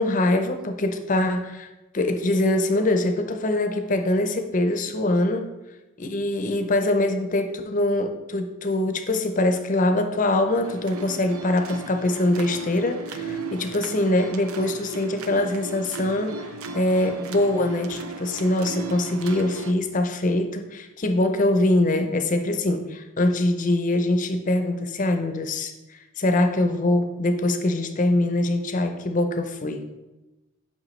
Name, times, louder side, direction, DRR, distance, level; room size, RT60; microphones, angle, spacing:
voice 1, 0.0-1.7 1.9-5.5 6.0-16.5 16.7-29.8, left 1 dB, 35° left, 6 dB, 0.6 m, -23 dB
sound 1, 10.6-19.7, right 4 dB, 85° right, 0.5 m, -36 dB
7.5 x 5.6 x 3.2 m, 1.1 s
head